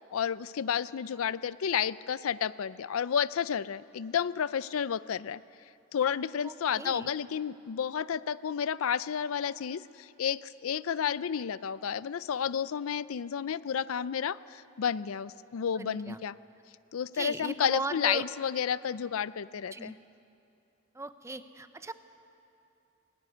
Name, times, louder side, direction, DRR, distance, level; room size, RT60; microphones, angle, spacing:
voice 1, 0.1-5.4 5.9-16.3 16.9-20.0, left 8 dB, 85° left, 17 dB, 0.5 m, -31 dB
voice 2, 6.4-7.1 15.7-16.2 17.1-18.3 19.7-19.9 20.9-21.9, right 2 dB, 15° right, 11 dB, 0.7 m, -38 dB
20.0 x 16.0 x 9.6 m, 2.8 s
head